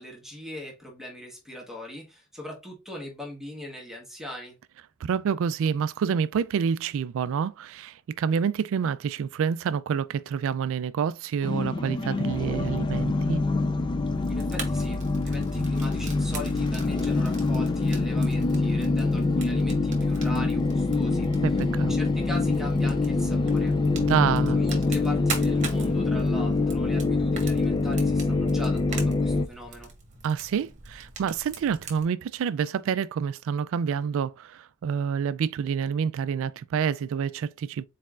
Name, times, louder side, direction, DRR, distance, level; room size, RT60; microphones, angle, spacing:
voice 1, 0.0-4.6 14.3-23.7 24.5-29.9, left 1 dB, ahead, 1.2 m, -40 dB
voice 2, 5.0-13.4 21.4-21.9 24.0-24.6 30.2-37.9, right 7 dB, 60° right, 0.3 m, -28 dB
sound 1, 11.4-29.5, left 3 dB, 20° left, 0.3 m, -25 dB
Fire, 14.0-32.0, right 5 dB, 35° right, 1.2 m, -42 dB
4.3 x 4.1 x 2.4 m
head